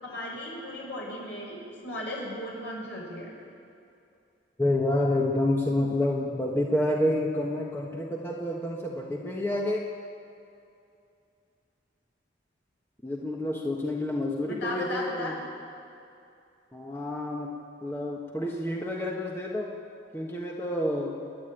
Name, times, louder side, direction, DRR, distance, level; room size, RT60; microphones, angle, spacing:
voice 1, 0.0-3.3 14.5-15.4, left 1 dB, 70° left, -3 dB, 7.0 m, -36 dB
voice 2, 4.6-9.8 13.0-15.3 16.7-17.5 17.8-19.7 20.1-21.2, left 1 dB, 10° left, -2 dB, 1.5 m, -28 dB
29.5 x 10.5 x 9.1 m, 2.6 s
head